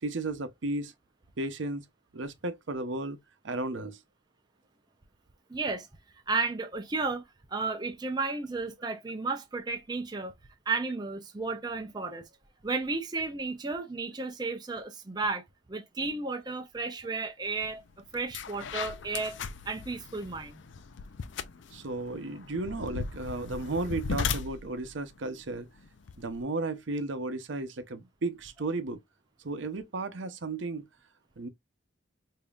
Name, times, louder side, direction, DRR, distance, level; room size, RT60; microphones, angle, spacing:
voice 1, 0.0-0.9 1.4-1.8 2.1-3.2 3.4-4.0 21.7-25.7 26.2-29.0 29.4-30.9 31.4-31.5, right 2 dB, 75° right, 0.7 m, -34 dB
voice 2, 5.5-5.9 6.3-7.2 7.5-10.3 10.7-12.3 12.6-15.4 15.7-17.8 18.1-19.4 19.7-20.6, right 3 dB, 20° right, 0.6 m, -33 dB
sound 1, 17.6-17.8 18.1-26.4, left 5 dB, 70° left, 0.5 m, -37 dB
5.0 x 2.8 x 2.4 m
head